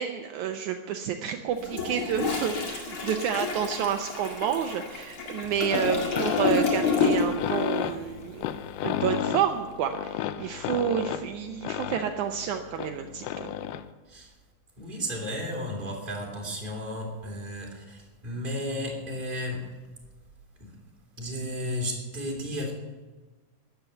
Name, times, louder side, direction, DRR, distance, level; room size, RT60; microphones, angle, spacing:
voice 1, 0.0-8.4 8.8-13.5, right 8 dB, 80° right, 5 dB, 1.7 m, -29 dB
Toilet flush, 1.6-7.5 7.8-8.1, left 5 dB, 40° left, 2.3 m, -29 dB
sound 1, 5.4-13.9, left 11 dB, 85° left, 1.9 m, -33 dB
voice 2, 14.8-19.7 20.6-20.7 21.2-22.7, equal, 15° right, -1 dB, 2.8 m, -33 dB
13.5 x 10.5 x 7.1 m, 1.2 s
omnidirectional pair, 4.4 m